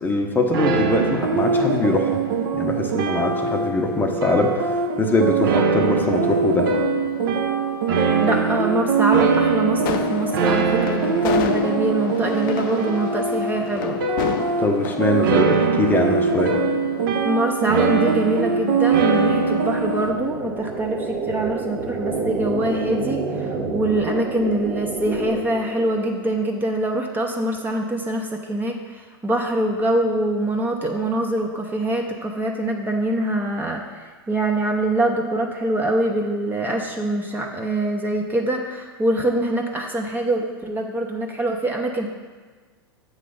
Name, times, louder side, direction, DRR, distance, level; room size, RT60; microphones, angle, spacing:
voice 1, 0.0-2.2 2.5-4.7 5.0-6.7 14.6-16.5, left 2 dB, 15° left, 2 dB, 0.7 m, -22 dB
sound 1, 0.5-20.1, right 4 dB, 65° right, 0.8 m, -22 dB
voice 2, 8.1-14.0 17.2-42.1, right 1 dB, 15° right, 1 dB, 0.7 m, -24 dB
sound 2, 9.8-15.3, left 8 dB, 60° left, 0.5 m, -30 dB
sound 3, 17.6-26.4, right 4 dB, 45° right, 1.0 m, -30 dB
7.6 x 3.2 x 5.4 m, 1.4 s
hypercardioid pair, 100°, 12 cm